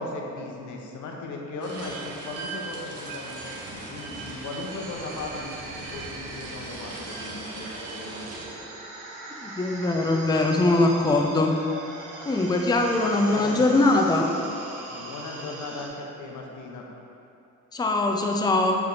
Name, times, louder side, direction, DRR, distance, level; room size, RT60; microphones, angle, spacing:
voice 1, 0.0-8.3 13.0-13.9 14.9-16.9, left 2 dB, 75° left, 0 dB, 0.9 m, -37 dB
sound 1, 1.6-8.5, right 3 dB, 55° right, 1.1 m, -39 dB
sound 2, 4.7-15.9, right 2 dB, 90° right, 1.0 m, -41 dB
voice 2, 9.4-11.5 12.3-14.2 17.7-18.8, left 2 dB, 15° left, 1 dB, 0.5 m, -22 dB
6.9 x 3.5 x 3.9 m, 2.7 s
cardioid pair, 90°, 30 cm